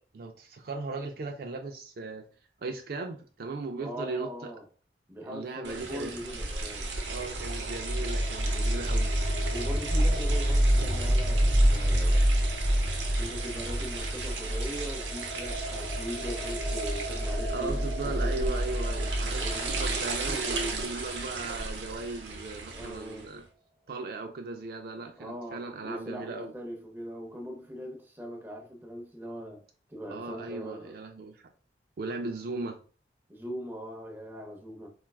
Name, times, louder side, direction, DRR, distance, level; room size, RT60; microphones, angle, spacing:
voice 1, 0.0-2.2 2.6-4.5 5.2-6.1 7.0-9.1 17.5-23.4 23.9-26.5 30.1-31.5 32.0-32.8, right 3 dB, 55° right, 0.4 m, -37 dB
voice 2, 3.8-4.6 5.1-6.9 9.5-12.2 13.2-18.6 19.2-19.8 20.3-20.4 22.7-23.3 25.2-29.6 29.9-30.9 33.3-34.9, equal, 10° right, 0.6 m, -40 dB
sound 1, 5.6-23.3, right 3 dB, 80° right, 0.7 m, -36 dB
sound 2, 6.8-21.6, equal, 15° left, 1.2 m, -28 dB
4.3 x 2.3 x 2.3 m
head